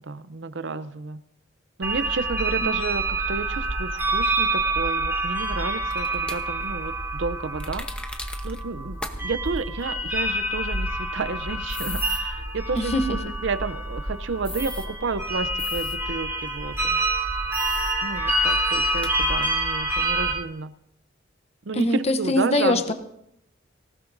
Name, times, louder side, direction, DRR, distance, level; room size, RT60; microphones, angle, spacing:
voice 1, 0.0-1.2 1.8-7.9 8.4-17.0 18.0-20.8 21.6-22.9, right 4 dB, 75° right, 13 dB, 0.6 m, -31 dB
sound 1, 1.8-20.3, right 2 dB, 10° right, 3.7 m, -27 dB
sound 2, 5.9-6.4 7.6-8.6 9.0-9.1 9.4-9.6 11.7-12.2 14.4-14.9 15.6-16.0 17.5-17.9 18.4-18.5 19.0-19.1, left 1 dB, 5° left, 0.9 m, -36 dB
voice 2, 12.8-13.1 21.7-22.9, left 1 dB, 35° left, 7 dB, 0.8 m, -23 dB
19.0 x 18.5 x 2.7 m, 0.79 s
head